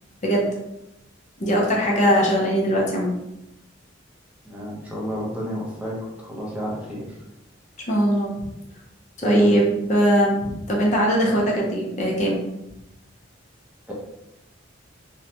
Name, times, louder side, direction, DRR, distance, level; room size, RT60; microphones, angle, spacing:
voice 1, 1.4-3.1 7.9-8.3 9.2-12.4, equal, 40° left, -2 dB, 0.5 m, -20 dB
voice 2, 4.4-7.1 9.2-9.6 13.9-14.0, equal, 5° right, -5 dB, 0.6 m, -30 dB
2.6 x 2.1 x 2.8 m, 0.86 s
head